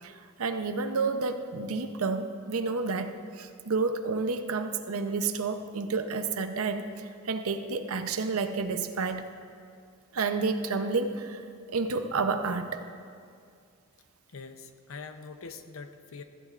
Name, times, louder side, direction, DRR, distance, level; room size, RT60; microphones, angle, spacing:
voice 1, 0.0-9.3 10.1-11.4 11.7-12.8, right 4 dB, 85° right, 8 dB, 0.7 m, -30 dB
voice 2, 14.3-16.2, left 4 dB, 75° left, 8 dB, 0.7 m, -43 dB
15.5 x 14.5 x 2.5 m, 2.3 s
head